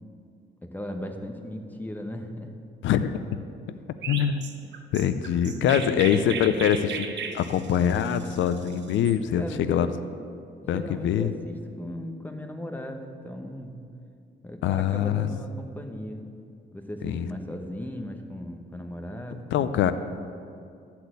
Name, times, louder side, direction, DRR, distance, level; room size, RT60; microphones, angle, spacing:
voice 1, 0.6-2.5 5.4-6.6 9.4-9.9 10.6-13.8 14.4-16.2 16.7-19.7, left 1 dB, 10° left, 4 dB, 1.0 m, -37 dB
voice 2, 2.8-3.2 4.1-4.4 4.9-9.9 10.7-11.3 14.6-15.3 17.0-17.3 19.3-19.9, left 9 dB, 70° left, 11 dB, 0.5 m, -24 dB
Chirp tweet, 4.0-9.2, right 6 dB, 65° right, 0.9 m, -36 dB
12.0 x 4.3 x 8.0 m, 2.4 s
cardioid pair, 90°, 20 cm